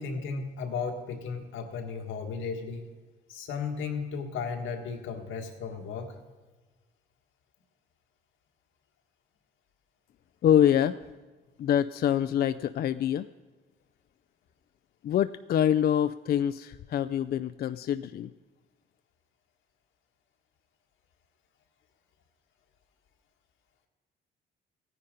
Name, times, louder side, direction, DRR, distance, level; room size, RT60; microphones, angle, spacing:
voice 1, 0.0-2.9 3.3-6.1, left 5 dB, 85° left, 4 dB, 1.6 m, -35 dB
voice 2, 10.4-11.0 11.6-13.3 15.0-18.3, left 10 dB, 50° left, 12 dB, 0.4 m, -25 dB
15.0 x 9.9 x 5.2 m, 1.3 s
cardioid pair, 90°, 20 cm